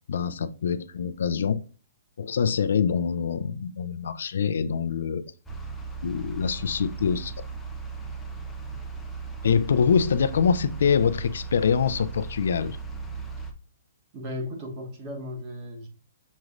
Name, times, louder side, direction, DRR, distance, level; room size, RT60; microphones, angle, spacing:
voice 1, 0.1-1.6 2.2-5.2 6.0-7.3 9.4-12.8, left 6 dB, 65° left, 0.4 m, -24 dB
sound 1, 5.5-13.5, right 4 dB, 5° left, 0.4 m, -37 dB
voice 2, 14.1-15.9, left 1 dB, 25° right, 1.1 m, -35 dB
6.3 x 3.0 x 2.5 m
hypercardioid pair, 175°, 0 cm